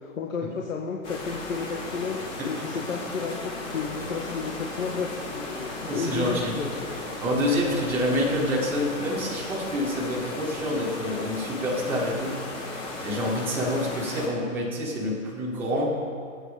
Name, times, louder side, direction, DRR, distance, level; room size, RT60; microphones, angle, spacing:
voice 1, 0.0-2.2 2.4-6.7, left 5 dB, 75° left, -1 dB, 1.9 m, -32 dB
sound 1, 1.0-14.3, left 2 dB, 10° left, 1.4 m, -36 dB
voice 2, 5.9-6.5 7.2-12.4 13.0-15.9, equal, 5° right, -7 dB, 1.7 m, -27 dB
19.5 x 8.8 x 5.1 m, 2.2 s
hypercardioid pair, 170°, 41 cm